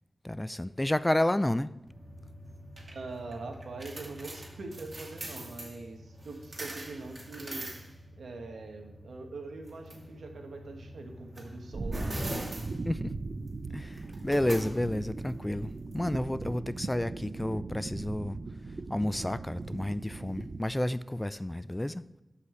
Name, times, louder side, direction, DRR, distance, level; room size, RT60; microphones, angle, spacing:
voice 1, 0.2-1.7 12.9-13.1 13.7-18.4 18.7-22.0, left 1 dB, 15° left, 0.4 m, -31 dB
sound 1, 1.9-16.6, right 1 dB, 40° right, 2.5 m, -43 dB
voice 2, 2.9-7.7 8.2-12.2, right 3 dB, 90° right, 1.4 m, -43 dB
sound 2, 11.7-20.6, right 3 dB, 60° right, 0.6 m, -39 dB
12.5 x 5.7 x 3.1 m
cardioid pair, 50°, 0 cm